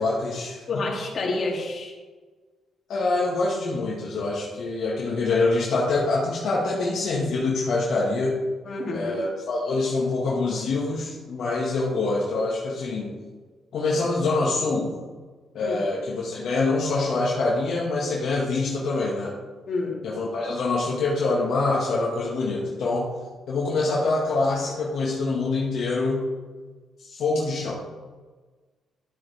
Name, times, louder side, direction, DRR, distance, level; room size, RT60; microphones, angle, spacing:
voice 1, 0.0-0.8 2.9-8.4 8.9-13.1 13.7-14.9 15.5-19.3 20.0-23.1 23.5-26.3 27.0-27.7, left 3 dB, 65° left, -5 dB, 1.9 m, -25 dB
voice 2, 0.7-2.0 8.6-9.2 15.6-15.8 19.7-20.1, left 2 dB, 45° left, -2 dB, 2.8 m, -29 dB
12.0 x 8.1 x 3.5 m, 1.4 s
cardioid pair, 125°, 0 cm